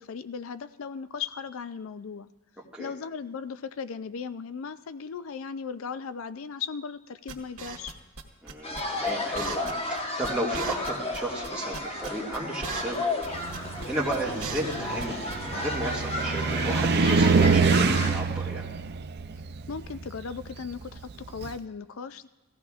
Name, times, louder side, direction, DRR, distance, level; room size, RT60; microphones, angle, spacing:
voice 1, 0.0-2.3 2.8-8.0 19.7-22.3, left 6 dB, 65° left, 13 dB, 0.4 m, -37 dB
sound 1, 7.3-8.2 8.5-8.8 9.1-9.2 9.4-10.0 10.2-10.3 10.5-11.5 11.7-13.0 13.2-13.3 13.5-13.9 14.1-15.1 15.3-15.4, right 4 dB, 75° right, 1.7 m, -37 dB
voice 2, 8.4-13.4 13.9-18.6, right 1 dB, 5° right, -6 dB, 1.9 m, -34 dB
sound 2, 8.6-18.1, left 2 dB, 30° left, 1.1 m, -33 dB
Car, 13.3-21.6, right 4 dB, 50° right, 0.5 m, -26 dB
18.0 x 15.0 x 2.4 m, 1.1 s
head